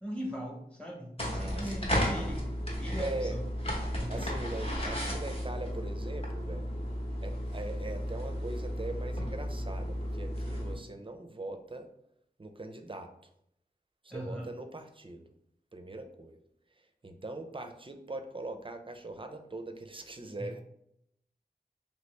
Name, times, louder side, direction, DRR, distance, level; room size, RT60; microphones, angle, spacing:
voice 1, 0.0-2.5 2.8-3.5 4.0-4.3 14.1-14.5 20.4-20.5, equal, 5° left, 0 dB, 1.0 m, -40 dB
sound 1, 1.2-10.8, equal, 35° left, 0.9 m, -34 dB
voice 2, 1.3-1.9 3.0-3.4 4.1-6.7 7.2-11.9 12.4-13.1 14.0-15.3 15.7-16.4 16.8-20.6, right 2 dB, 30° right, 6 dB, 0.4 m, -41 dB
2.9 x 2.9 x 3.2 m, 0.75 s
wide cardioid pair, 50°, 17 cm